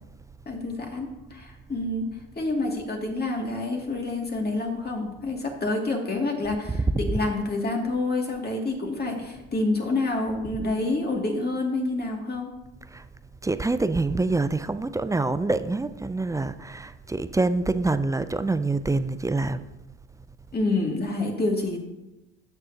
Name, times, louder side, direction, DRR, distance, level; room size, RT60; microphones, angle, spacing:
voice 1, 0.5-2.1 2.4-12.5 20.5-21.8, left 2 dB, 30° left, 2.4 m, -28 dB
voice 2, 13.4-19.6, right 3 dB, 10° right, 0.4 m, -26 dB
15.0 x 6.7 x 2.8 m
hypercardioid pair, 65°, 35 cm